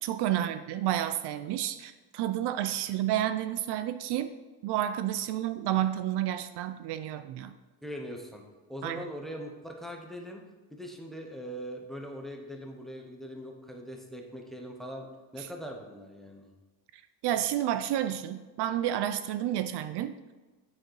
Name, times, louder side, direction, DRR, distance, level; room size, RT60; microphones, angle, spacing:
voice 1, 0.0-4.3 4.6-7.6 8.8-9.0 15.4-15.5 17.2-20.2, right 12 dB, 65° right, 11 dB, 0.6 m, -30 dB
voice 2, 7.8-8.4 8.7-10.4 10.7-15.1 15.3-16.5, equal, ahead, 2 dB, 0.9 m, -41 dB
9.3 x 6.5 x 4.7 m, 1.3 s
cardioid pair, 170°, 43 cm